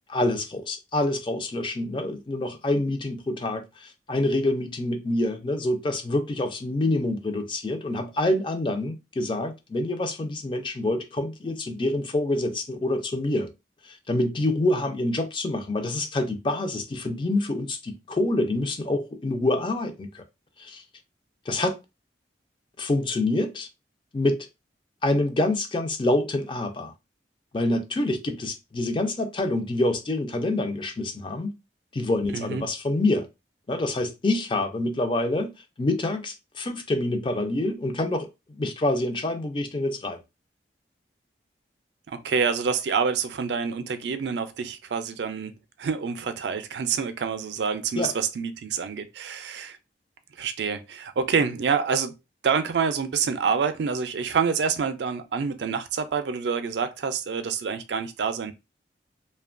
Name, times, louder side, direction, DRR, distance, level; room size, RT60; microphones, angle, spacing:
voice 1, 0.1-13.5 13.8-20.2 20.6-20.8 21.5-21.8 22.8-23.7 24.1-24.5 25.0-26.9 27.5-31.5 31.9-33.3 33.7-35.5 35.8-40.2 48.0-48.1, left 2 dB, 30° left, 0.4 m, -26 dB
voice 2, 32.3-32.6 42.1-49.8 50.4-52.1 52.4-58.5, right 6 dB, 75° right, 0.4 m, -27 dB
2.8 x 2.2 x 2.4 m
head